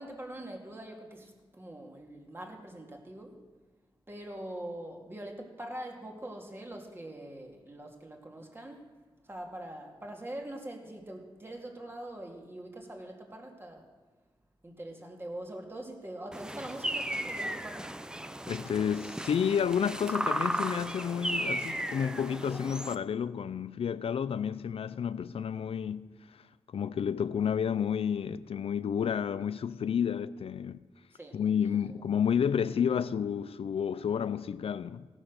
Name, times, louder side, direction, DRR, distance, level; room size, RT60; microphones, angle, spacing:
voice 1, 0.0-3.4 4.1-8.9 9.2-13.9 14.6-17.9 31.1-31.4 31.7-31.8, right 1 dB, 25° right, 2.1 m, -43 dB
sound 1, 16.3-23.0, right 1 dB, 10° right, 0.5 m, -35 dB
voice 2, 18.5-26.4 26.7-30.8 31.3-35.1, left 8 dB, 75° left, 0.4 m, -30 dB
16.5 x 9.9 x 6.6 m
wide cardioid pair, 110°, 10 cm